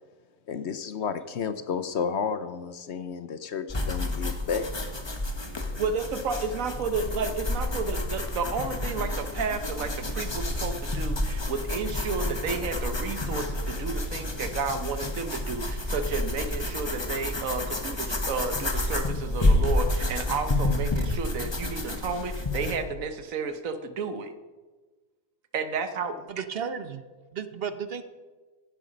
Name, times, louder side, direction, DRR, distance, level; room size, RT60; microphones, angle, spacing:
voice 1, 0.5-4.7, left 6 dB, 60° left, 11 dB, 0.9 m, -31 dB
sound 1, 3.7-22.8, left 1 dB, 20° left, 1.2 m, -29 dB
voice 2, 5.8-24.3 25.5-26.3, right 4 dB, 75° right, 10 dB, 1.4 m, -32 dB
voice 3, 26.3-27.0 27.3-28.0, right 7 dB, 50° right, 11 dB, 0.9 m, -33 dB
15.5 x 10.5 x 5.2 m, 1.3 s
omnidirectional pair, 1.4 m